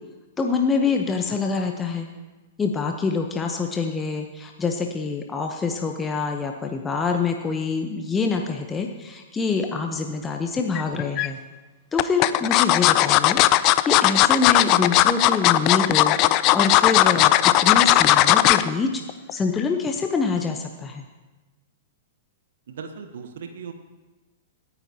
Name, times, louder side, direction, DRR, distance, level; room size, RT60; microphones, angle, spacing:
voice 1, 0.4-2.1 2.6-11.4 11.9-19.0 19.3-21.0, left 4 dB, 15° left, 4 dB, 0.9 m, -25 dB
sound 1, 10.7-11.3 12.0-18.7 19.1-19.3 19.6-19.7, left 16 dB, 35° left, 0.5 m, -17 dB
voice 2, 22.7-23.7, right 6 dB, 60° right, 7 dB, 1.1 m, -37 dB
26.0 x 10.0 x 2.9 m, 1.2 s
figure-of-eight pair, 100°, 0 cm